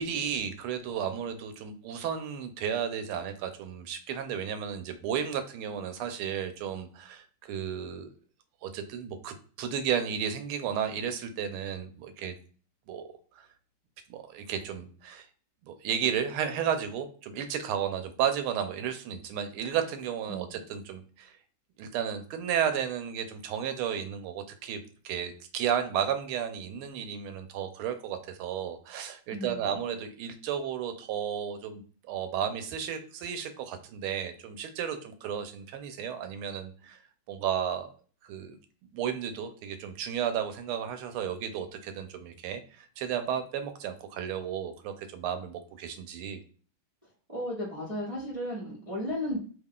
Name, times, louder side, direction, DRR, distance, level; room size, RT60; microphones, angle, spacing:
voice 1, 0.0-8.1 8.6-12.3 12.9-13.1 13.4-13.5 14.1-15.2 15.6-21.3 21.8-37.0 37.3-37.9 38.2-38.6 38.9-46.4, right 8 dB, 90° right, 8 dB, 1.5 m, -33 dB
voice 2, 29.3-29.7 47.3-49.4, equal, 25° right, -6 dB, 0.9 m, -34 dB
3.5 x 2.3 x 3.6 m, 0.41 s
omnidirectional pair, 2.3 m